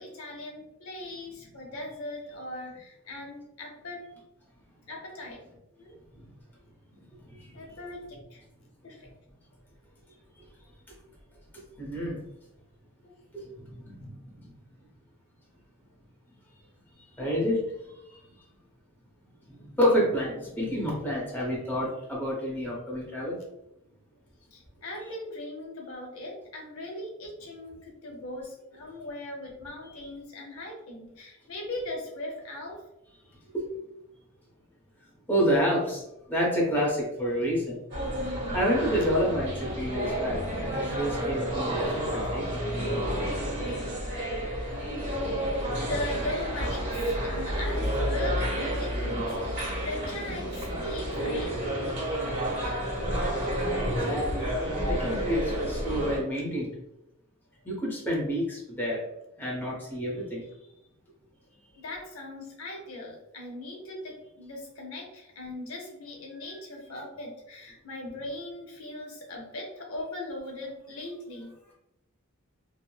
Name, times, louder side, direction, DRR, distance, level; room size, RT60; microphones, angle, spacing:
voice 1, 0.0-4.0 4.9-5.4 5.8-5.9 7.5-8.4 8.8-9.1 13.0-13.1 24.5-32.8 38.5-38.6 44.7-45.3 45.6-51.5 61.7-71.5, left 1 dB, 75° left, 0 dB, 0.7 m, -39 dB
voice 2, 7.0-7.7 10.4-10.5 10.9-11.0 11.5-12.2 13.3-14.5 17.0-18.3 19.4-23.4 29.8-30.1 33.3-33.7 35.3-37.8 38.5-42.6 53.9-56.7 57.6-59.0 59.4-60.5 66.3-66.8, equal, 10° left, -5 dB, 0.7 m, -29 dB
sound 1, 37.9-56.2, equal, 50° right, 1.3 m, -30 dB
3.0 x 2.0 x 2.2 m, 0.87 s
head